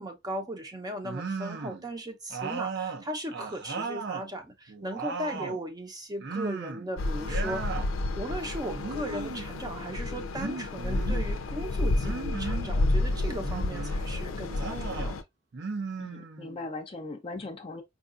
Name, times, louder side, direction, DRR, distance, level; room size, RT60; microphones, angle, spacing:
voice 1, 0.0-7.7 8.1-15.2, right 1 dB, 20° right, 0.6 m, -37 dB
sound 1, 1.0-1.8 2.3-4.3 4.7-5.6 6.2-6.9 7.2-7.9 8.7-9.5 10.3-11.3 12.0-12.7 13.4-14.0 14.5-15.1 15.5-16.6, right 4 dB, 60° right, 0.6 m, -36 dB
sound 2, 7.0-15.2, left 2 dB, 85° left, 0.4 m, -30 dB
voice 2, 16.0-17.8, left 2 dB, 25° left, 0.5 m, -39 dB
4.8 x 2.3 x 2.5 m
head